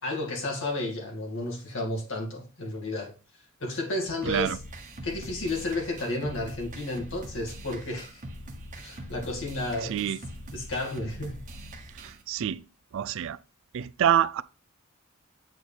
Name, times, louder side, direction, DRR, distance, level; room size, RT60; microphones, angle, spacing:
voice 1, 0.0-3.1 3.6-4.6 5.0-8.2 8.8-10.1 10.5-11.4, left 2 dB, 65° left, 2.2 m, -32 dB
sound 1, 4.2-12.2, right 1 dB, 40° right, 1.2 m, -42 dB
voice 2, 4.3-4.6 9.9-10.2 12.0-12.6 12.9-13.4 13.7-14.4, right 9 dB, 65° right, 0.4 m, -26 dB
7.9 x 4.5 x 3.4 m
head